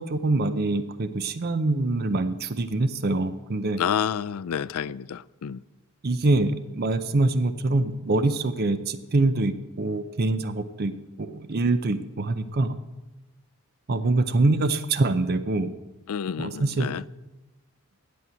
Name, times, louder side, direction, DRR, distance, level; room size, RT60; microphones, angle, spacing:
voice 1, 0.0-3.8 6.0-10.9 11.2-12.8 13.9-15.7 16.4-16.9, right 2 dB, 45° right, 0.6 m, -24 dB
voice 2, 3.8-5.6 16.1-17.0, left 8 dB, 80° left, 0.4 m, -29 dB
9.3 x 8.5 x 9.0 m
head